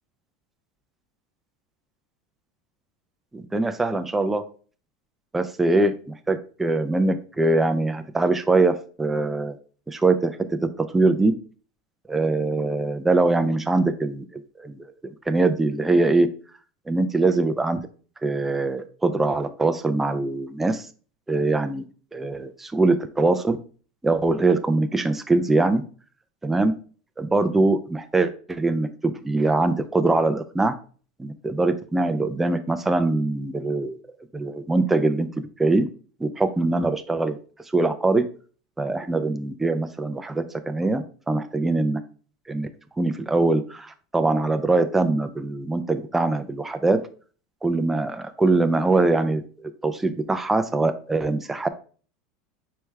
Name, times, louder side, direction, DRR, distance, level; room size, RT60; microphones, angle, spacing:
voice 1, 3.3-4.4 5.3-5.9 6.3-9.6 9.9-10.4 10.6-11.3 12.1-14.7 15.3-16.3 16.9-17.8 18.2-20.8 21.3-21.8 22.1-23.6 24.0-25.8 26.4-26.7 27.2-30.7 31.2-34.0 34.3-35.9 36.2-37.4 37.7-38.3 38.8-42.0 42.5-42.7 43.0-47.0 47.6-51.7, right 2 dB, 10° right, 9 dB, 0.3 m, -22 dB
4.6 x 3.4 x 3.1 m, 0.40 s
supercardioid pair, 135°, 3 cm